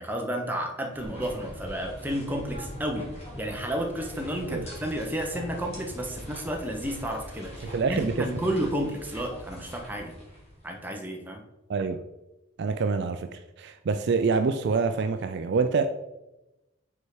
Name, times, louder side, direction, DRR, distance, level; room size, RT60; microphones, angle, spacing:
voice 1, 0.0-10.1 10.6-11.4, equal, 10° right, 2 dB, 0.8 m, -32 dB
sound 1, 0.9-10.8, equal, 30° left, 1.8 m, -42 dB
voice 2, 7.6-8.3 11.7-12.0 12.6-15.9, right 4 dB, 50° right, 8 dB, 0.3 m, -26 dB
5.3 x 4.7 x 4.8 m, 0.96 s
head